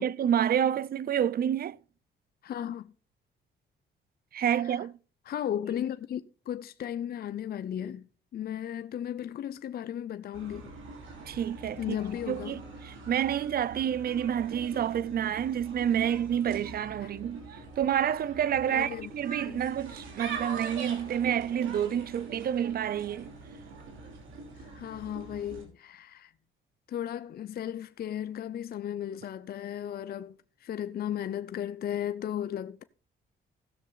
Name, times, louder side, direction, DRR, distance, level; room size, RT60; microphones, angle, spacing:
voice 1, 0.0-1.8 4.3-4.9 11.3-11.8 12.3-12.6 13.1-17.5 17.8-23.3, right 9 dB, 50° right, 0.5 m, -28 dB
voice 2, 2.4-2.9 4.4-4.9 5.3-10.7 11.8-12.6 17.0-17.1 18.7-19.1 19.4-19.7 24.5-26.3 26.9-32.8, left 10 dB, 50° left, 0.5 m, -35 dB
sound 1, 10.3-25.7, right 4 dB, 85° right, 3.0 m, -43 dB
16.0 x 6.6 x 3.9 m
cardioid pair, 90°, 20 cm